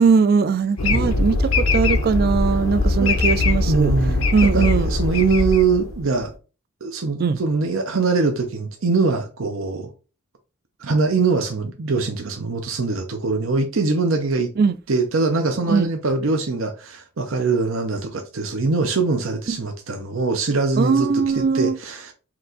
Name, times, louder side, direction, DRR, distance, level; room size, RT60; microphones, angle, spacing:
voice 1, 0.0-3.9 4.3-4.9 7.2-7.4 14.6-14.7 15.7-15.9 19.5-19.6 20.8-21.8, right 5 dB, 45° right, 0.3 m, -19 dB
sound 1, 0.8-6.2, left 2 dB, 80° left, 0.7 m, -21 dB
voice 2, 0.9-1.3 3.0-3.1 3.7-6.3 6.8-9.9 10.8-14.5 14.9-22.1, right 4 dB, 75° right, 0.7 m, -22 dB
4.5 x 2.5 x 3.9 m
head